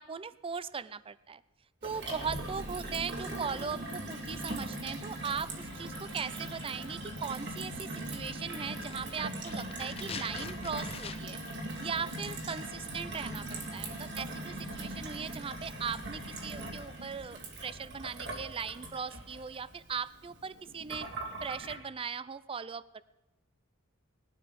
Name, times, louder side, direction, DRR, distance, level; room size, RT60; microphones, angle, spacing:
voice 1, 0.0-1.4 1.8-11.4 11.8-21.1 21.4-23.0, right 6 dB, 25° right, 17 dB, 0.4 m, -39 dB
Gurgling / Water tap faucet / Sink (filling or washing), 1.8-21.7, right 1 dB, 55° right, 2.6 m, -40 dB
sound 1, 8.7-11.5 11.8-11.9, left 6 dB, 25° left, 0.6 m, -45 dB
19.5 x 12.0 x 5.2 m, 1.1 s
head